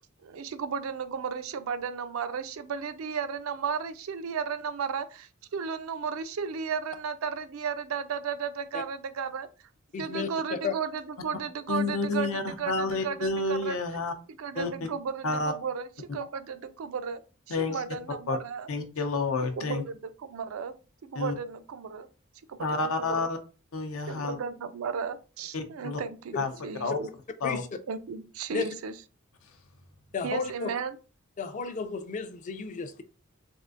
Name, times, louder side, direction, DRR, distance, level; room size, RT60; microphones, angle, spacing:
voice 1, 0.2-9.5 10.0-13.8 14.4-15.8 16.1-17.2 17.5-18.7 19.6-20.7 21.0-22.1 22.5-23.3 24.1-26.4 26.6-27.1 27.9-28.9 30.2-31.0, right 6 dB, 90° right, 0.4 m, -34 dB
voice 2, 9.9-10.7 26.3-26.4 27.4-27.7 28.5-28.7 30.1-30.7 31.4-33.0, left 5 dB, 35° left, 0.3 m, -33 dB
voice 3, 11.7-14.1 14.5-14.7 15.2-15.5 17.5-17.8 18.3-18.4 18.7-19.8 21.1-21.3 22.6-23.4 23.7-24.4 25.5-26.0 26.3-26.5 26.8-27.0 27.4-27.6, left 3 dB, 85° left, 0.6 m, -29 dB
3.5 x 2.5 x 2.4 m
head